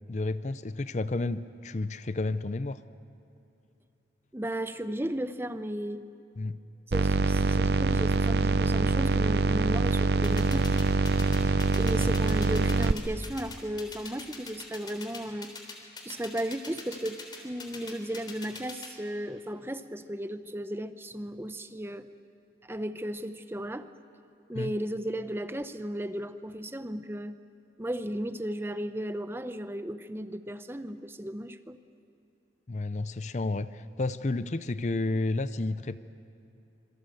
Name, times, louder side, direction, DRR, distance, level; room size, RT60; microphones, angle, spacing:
voice 1, 0.1-2.8 6.4-6.6 12.0-12.1 24.5-24.7 32.7-36.0, left 2 dB, 40° left, 14 dB, 0.6 m, -31 dB
voice 2, 4.3-6.1 6.9-10.8 11.8-15.5 16.0-22.1 22.6-23.9 24.5-27.4 27.8-31.8, right 1 dB, 10° right, 10 dB, 0.7 m, -35 dB
sound 1, 6.9-12.9, right 3 dB, 60° right, 0.6 m, -24 dB
sound 2, 10.2-18.9, left 4 dB, 25° left, 3.5 m, -42 dB
26.0 x 24.5 x 7.8 m, 2.8 s
head